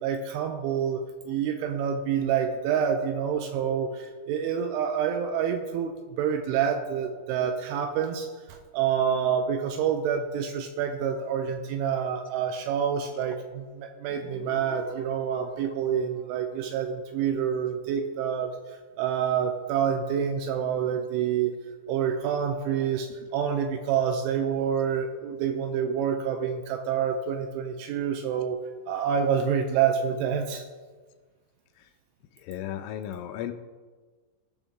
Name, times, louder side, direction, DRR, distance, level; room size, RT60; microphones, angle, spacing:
voice 1, 0.0-18.6 19.0-21.5 21.9-28.6 28.9-30.7, right 8 dB, 85° right, 5 dB, 2.8 m, -27 dB
Guitar, 14.1-17.6, left 1 dB, 50° right, 1.4 m, -46 dB
voice 2, 32.4-33.5, left 11 dB, 85° left, 7 dB, 3.0 m, -34 dB
18.0 x 6.1 x 3.7 m, 1.4 s
omnidirectional pair, 5.9 m